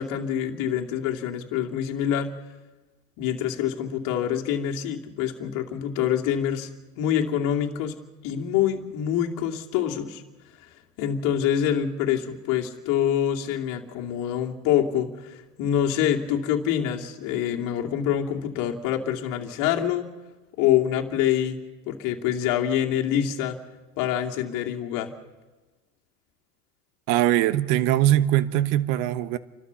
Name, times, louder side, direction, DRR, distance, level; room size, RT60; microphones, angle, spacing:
voice 1, 0.0-2.3 3.2-6.7 7.0-7.9 8.2-10.2 11.0-20.1 20.6-21.6 21.9-23.6 24.0-25.1, left 10 dB, 40° left, 2 dB, 2.5 m, -26 dB
voice 2, 27.1-29.4, right 13 dB, 40° right, 15 dB, 1.1 m, -21 dB
30.0 x 12.5 x 7.0 m, 1.2 s
hypercardioid pair, 115°, 47 cm